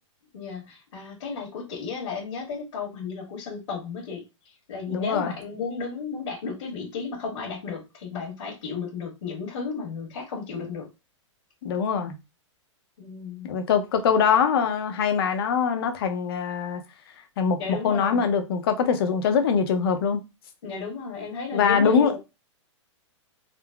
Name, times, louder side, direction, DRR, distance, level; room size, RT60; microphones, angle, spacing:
voice 1, 0.3-10.9 13.0-13.5 17.6-18.3 20.6-22.2, left 5 dB, 75° left, 1.5 m, -34 dB
voice 2, 4.9-5.3 11.6-12.2 13.4-16.8 17.4-20.2 21.5-22.1, left 6 dB, 50° left, 0.7 m, -23 dB
3.7 x 2.1 x 2.3 m
hypercardioid pair, 165°, 16 cm